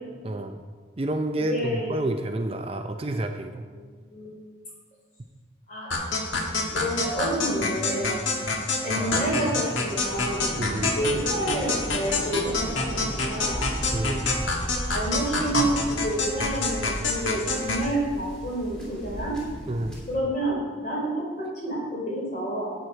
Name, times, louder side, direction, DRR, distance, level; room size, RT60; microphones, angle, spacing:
voice 1, 0.2-0.6 1.0-3.6 9.0-9.4 10.6-11.0 13.9-14.3 19.7-19.9, right 1 dB, 30° right, 6 dB, 0.5 m, -29 dB
voice 2, 1.4-2.0 3.7-4.3 5.7-6.4 6.7-8.2 8.8-10.6 11.0-13.7 14.9-19.4 20.1-22.8, right 1 dB, 40° left, -3 dB, 3.4 m, -29 dB
sound 1, 5.9-17.9, left 3 dB, 85° left, 1.4 m, -27 dB
Waves surf, 10.0-20.2, equal, 5° left, 2.7 m, -36 dB
11.0 x 8.1 x 4.5 m, 1.5 s
head